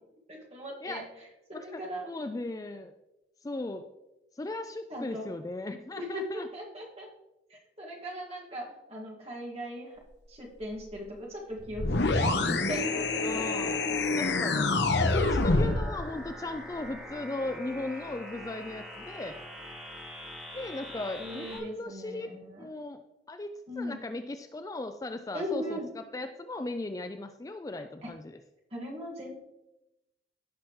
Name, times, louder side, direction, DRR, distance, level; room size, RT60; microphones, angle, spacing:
voice 1, 0.3-1.0 1.5-2.1 4.9-5.3 6.0-7.1 7.5-10.0 10.3-13.4 14.6-14.7 15.5-16.0 20.8-22.7 23.7-24.0 25.3-25.9 28.0-28.1 28.7-29.4, equal, 35° right, -2 dB, 2.0 m, -39 dB
voice 2, 1.5-2.9 3.4-3.9 4.4-6.5 13.2-13.8 14.2-14.7 15.0-19.3 20.5-22.3 22.6-23.0 23.3-28.3, left 2 dB, 20° left, 8 dB, 0.3 m, -37 dB
sound 1, 11.6-21.6, left 1 dB, 5° right, 2.4 m, -43 dB
sound 2, 11.8-16.0, left 3 dB, 70° left, 0.7 m, -26 dB
16.0 x 5.8 x 3.2 m, 0.96 s
head